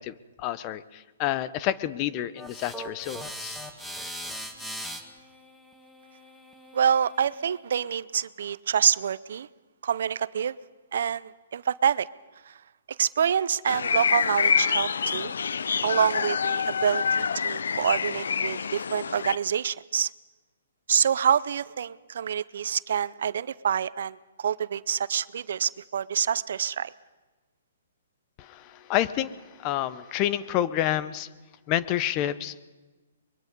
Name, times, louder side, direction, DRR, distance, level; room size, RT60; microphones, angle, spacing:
voice 1, 0.0-3.6 28.4-31.3 31.7-32.6, left 12 dB, 30° left, 16 dB, 0.7 m, -29 dB
sound 1, 2.4-7.5, equal, 5° left, 1.5 m, -40 dB
voice 2, 6.7-9.5 9.8-10.6 10.9-12.1 12.5-12.6 12.9-15.3 15.8-20.1 20.9-26.9, right 8 dB, 65° right, 19 dB, 0.6 m, -27 dB
sound 2, 13.6-19.4, left 6 dB, 80° left, 0.6 m, -27 dB
23.5 x 22.5 x 5.3 m, 1.2 s
hypercardioid pair, 150°, 0 cm